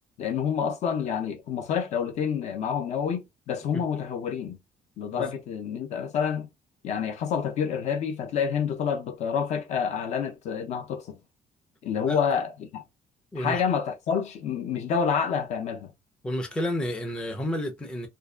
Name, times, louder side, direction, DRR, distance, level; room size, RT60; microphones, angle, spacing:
voice 1, 0.2-4.6 5.0-6.5 6.8-11.2 11.8-12.8 13.4-15.9, left 7 dB, 55° left, 0.6 m, -28 dB
voice 2, 16.2-18.1, left 1 dB, 5° left, 0.4 m, -30 dB
2.6 x 2.4 x 2.2 m
cardioid pair, 155°, 14 cm